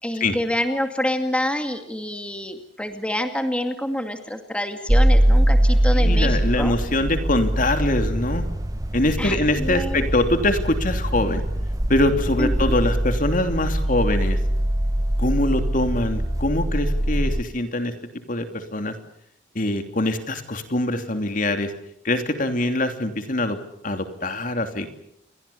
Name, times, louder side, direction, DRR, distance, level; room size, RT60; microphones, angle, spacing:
voice 1, 0.0-6.7 9.2-10.1 12.4-12.8, left 1 dB, 5° left, 6 dB, 2.3 m, -27 dB
sound 1, 4.9-17.4, right 1 dB, 20° right, 0.9 m, -22 dB
voice 2, 5.9-8.5 8.9-11.4 11.9-14.4 15.2-17.9 18.3-19.0 19.5-21.7 22.0-23.6 23.8-24.9, left 1 dB, 50° left, 7 dB, 3.1 m, -23 dB
29.5 x 23.5 x 7.2 m, 0.72 s
head